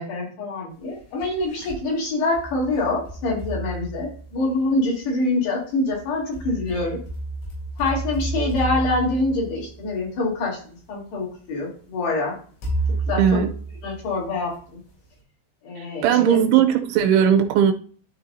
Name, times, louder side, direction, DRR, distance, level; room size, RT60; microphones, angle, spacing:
voice 1, 0.0-7.0 7.8-10.6 10.9-12.4 13.1-13.4 13.8-14.6 15.6-16.4, left 2 dB, 60° left, 5.0 m, -25 dB
sound 1, 0.9-1.8 2.4-4.7 5.9-10.3 11.2-11.3 12.6-14.5, right 2 dB, 80° left, 5.9 m, -31 dB
voice 2, 13.2-13.5 16.0-17.7, right 9 dB, 80° right, 3.2 m, -18 dB
13.0 x 4.8 x 2.7 m
omnidirectional pair, 5.4 m